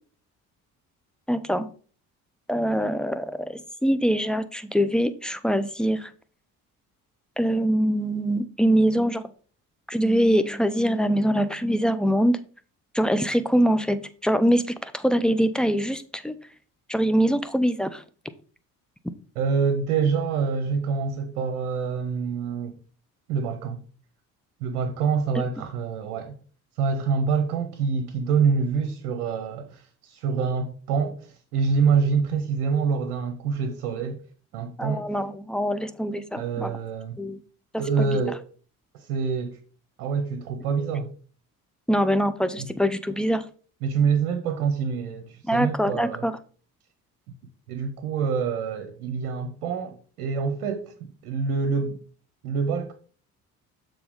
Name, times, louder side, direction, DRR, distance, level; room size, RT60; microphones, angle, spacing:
voice 1, 1.3-1.7 2.5-6.1 7.4-9.3 9.9-12.4 12.9-16.3 16.9-18.0 25.3-25.4 34.8-36.7 37.2-37.4 38.0-38.2 41.9-43.4 45.5-46.3, equal, ahead, 0.7 m, -23 dB
voice 2, 19.4-22.8 23.3-23.8 24.6-26.3 26.8-34.2 34.5-35.1 36.4-37.2 37.8-38.4 38.9-39.6 40.0-41.1 42.6-42.7 43.8-46.3 47.7-52.0 52.4-52.9, right 5 dB, 80° right, 0.9 m, -26 dB
7.0 x 3.7 x 5.0 m
hypercardioid pair, 50°, 43 cm